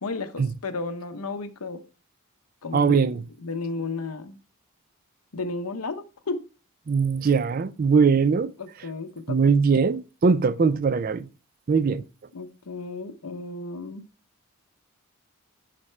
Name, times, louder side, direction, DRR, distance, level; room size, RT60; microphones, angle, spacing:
voice 1, 0.0-1.8 2.6-3.1 3.4-4.4 5.3-6.5 8.6-9.4 12.3-14.1, left 3 dB, 80° left, 0.8 m, -33 dB
voice 2, 2.7-3.2 6.9-8.5 9.3-11.3 11.7-12.0, right 5 dB, 40° right, 0.3 m, -21 dB
11.0 x 4.2 x 3.2 m
head